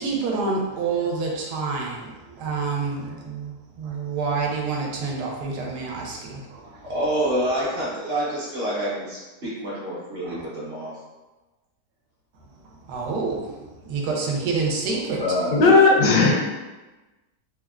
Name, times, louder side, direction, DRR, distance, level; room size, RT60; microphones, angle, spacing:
voice 1, 0.0-7.0 10.2-10.4 12.6-15.3 15.6-15.7, right 4 dB, 90° right, -1 dB, 1.2 m, -28 dB
voice 2, 6.9-10.9 15.2-15.6, equal, 50° right, -8 dB, 0.7 m, -27 dB
voice 3, 15.5-16.5, left 3 dB, 85° left, 0 dB, 1.2 m, -16 dB
3.4 x 2.1 x 2.3 m, 1.1 s
omnidirectional pair, 1.7 m